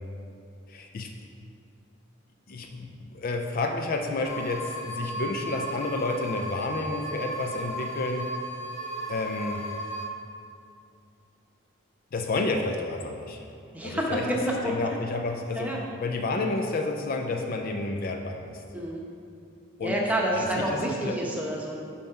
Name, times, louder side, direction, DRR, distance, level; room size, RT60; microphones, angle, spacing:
voice 1, 0.7-1.1 2.5-8.3 9.1-9.6 12.1-13.4 13.8-14.3 14.6-18.6 19.8-20.0 20.3-21.1, left 2 dB, 45° left, 4 dB, 0.4 m, -30 dB
sound 1, 4.2-10.0, right 1 dB, 85° left, 1.5 m, -35 dB
voice 2, 13.7-14.7 15.5-15.8 18.7-19.0 19.8-21.8, right 1 dB, 10° right, -2 dB, 0.9 m, -28 dB
7.1 x 4.2 x 5.7 m, 2.5 s
head